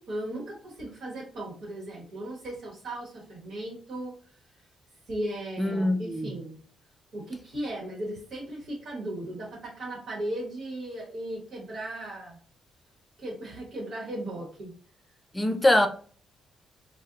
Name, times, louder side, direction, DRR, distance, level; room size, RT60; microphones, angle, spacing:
voice 1, 0.0-4.2 5.1-6.6 7.1-12.4 13.2-14.7, right 1 dB, 50° right, 1.0 m, -36 dB
voice 2, 5.6-6.3 15.3-15.9, left 1 dB, 10° left, 0.3 m, -23 dB
4.1 x 2.0 x 2.4 m
cardioid pair, 170°, 0 cm